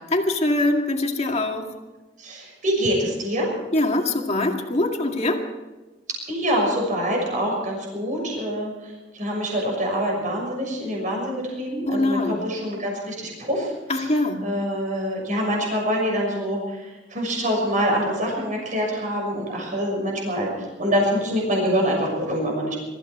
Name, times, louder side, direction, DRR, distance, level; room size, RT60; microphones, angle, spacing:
voice 1, 0.1-1.7 3.7-5.4 11.9-12.4 13.9-14.4, left 2 dB, 35° left, 2 dB, 2.2 m, -23 dB
voice 2, 2.2-3.5 6.1-14.1 14.4-22.8, equal, 45° right, -1 dB, 6.4 m, -25 dB
22.5 x 14.5 x 4.4 m, 1.2 s
head